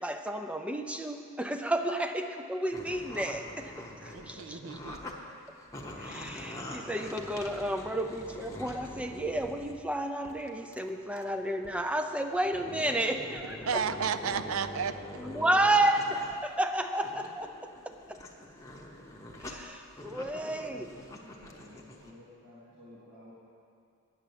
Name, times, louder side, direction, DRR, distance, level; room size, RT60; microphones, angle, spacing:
voice 1, 0.0-4.6 6.0-13.8 15.2-18.2 19.4-20.9, right 1 dB, 5° right, 6 dB, 0.4 m, -31 dB
sound 1, 2.7-5.1 5.5-9.8 10.2-10.8 11.2-11.3 11.6-11.7 12.3-16.4 16.8-22.1, left 1 dB, 15° left, 0.8 m, -44 dB
voice 2, 4.1-5.1 13.7-15.0, right 6 dB, 65° right, 11 dB, 0.4 m, -32 dB
Wind instrument woodwind instrument, 10.3-16.1, right 2 dB, 50° right, 1.5 m, -54 dB
voice 3, 21.1-23.3, left 1 dB, 90° right, -11 dB, 2.8 m, -54 dB
9.2 x 7.2 x 8.6 m, 2.4 s
head